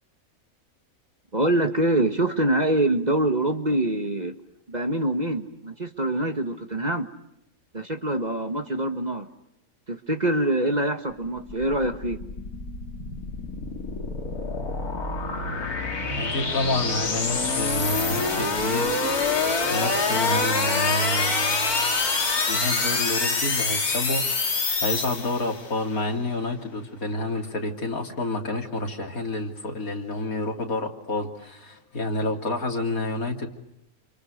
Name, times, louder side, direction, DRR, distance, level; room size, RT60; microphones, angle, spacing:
voice 1, 1.3-4.3 4.7-7.1 7.7-9.3 9.9-12.2, right 1 dB, 30° right, 7 dB, 1.6 m, -25 dB
sound 1, 11.2-25.7, left 3 dB, 85° left, 2.9 m, -26 dB
voice 2, 16.2-19.0 19.7-22.1 22.5-33.5, left 2 dB, 70° left, 3 dB, 3.5 m, -29 dB
28.5 x 28.0 x 6.6 m, 0.84 s
omnidirectional pair, 1.5 m